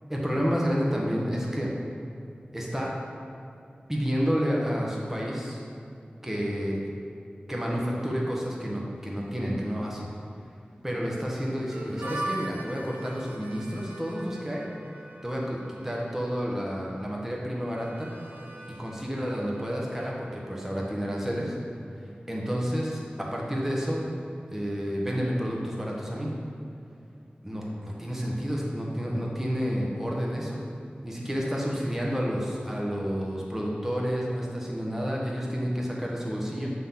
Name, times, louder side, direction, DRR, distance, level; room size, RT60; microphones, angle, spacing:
voice 1, 0.1-1.7 2.5-2.9 3.9-5.6 6.2-6.8 7.5-10.1 10.8-14.7 15.2-18.1 18.8-21.5 22.3-24.0 24.5-26.3 27.4-30.6 31.0-36.7, equal, 10° right, -3 dB, 1.3 m, -30 dB
Harmonica, 11.7-21.3, right 2 dB, 90° right, 0.8 m, -42 dB
8.2 x 3.8 x 5.7 m, 2.5 s
wide cardioid pair, 45°, 3 cm